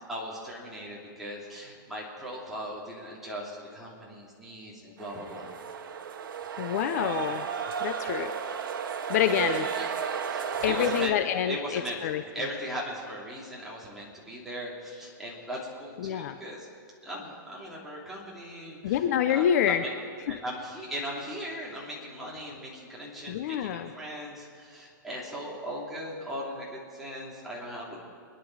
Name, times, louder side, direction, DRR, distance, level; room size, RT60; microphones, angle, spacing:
voice 1, 0.1-5.5 9.3-9.9 10.3-11.2 11.5-16.7 17.0-19.9 20.3-28.0, equal, ahead, -6 dB, 3.0 m, -39 dB
sound 1, 5.0-11.1, right 7 dB, 85° right, 1.2 m, -33 dB
voice 2, 6.6-7.4 7.8-8.3 9.1-9.6 10.6-12.2 16.0-16.4 18.8-19.8 20.3-20.4 23.3-23.9, left 10 dB, 50° left, 9 dB, 0.7 m, -27 dB
25.5 x 10.5 x 4.8 m, 2.2 s
hypercardioid pair, 160°, 11 cm